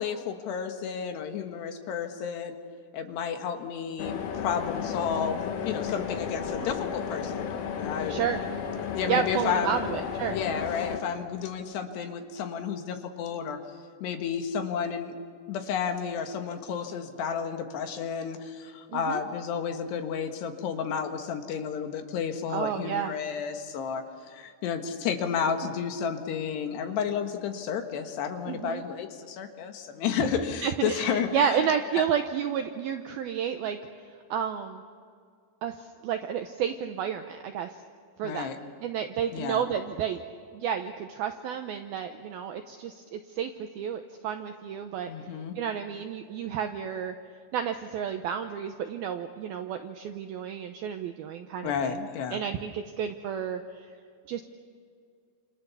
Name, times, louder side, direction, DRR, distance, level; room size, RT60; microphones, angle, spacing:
voice 1, 0.0-2.6 2.9-8.1 8.9-9.8 10.3-13.6 14.0-15.1 15.5-31.6 38.2-38.6 39.3-39.6 45.1-45.6 51.6-52.4, left 7 dB, 70° left, 6 dB, 3.3 m, -32 dB
sound 1, 4.0-11.0, left 7 dB, 90° left, 4.4 m, -33 dB
voice 2, 8.1-8.4 9.1-10.4 18.9-19.2 22.5-23.1 28.5-28.8 30.1-30.3 30.6-33.8 34.3-34.8 35.6-35.8 36.0-37.7 38.2-38.5 38.8-40.2 40.5-43.5 43.8-45.1 45.6-47.1 47.5-53.6 54.3-54.4, right 8 dB, 80° right, 6 dB, 2.2 m, -31 dB
30.0 x 27.5 x 6.9 m, 2.2 s
omnidirectional pair, 5.4 m